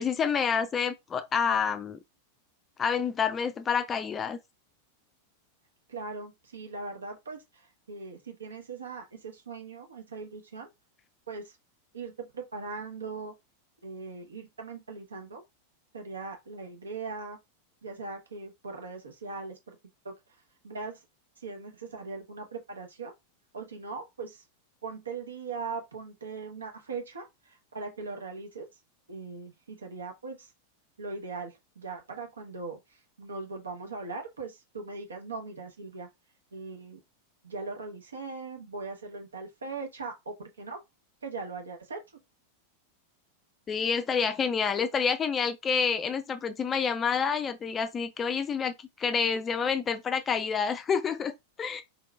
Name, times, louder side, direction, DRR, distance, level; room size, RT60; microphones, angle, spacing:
voice 1, 0.0-2.0 2.8-4.4 43.7-51.8, left 6 dB, 20° left, 0.4 m, -28 dB
voice 2, 5.9-10.7 11.3-11.6 11.9-13.3 13.8-15.4 15.9-17.4 17.8-19.8 20.0-20.1 20.6-21.0 21.4-23.1 23.5-24.4 24.8-28.7 29.1-30.5 31.0-32.8 33.2-36.1 36.5-37.0 37.4-40.8 41.2-42.0, right 4 dB, 70° right, 1.0 m, -40 dB
3.9 x 2.9 x 2.3 m
figure-of-eight pair, 90°, 0 cm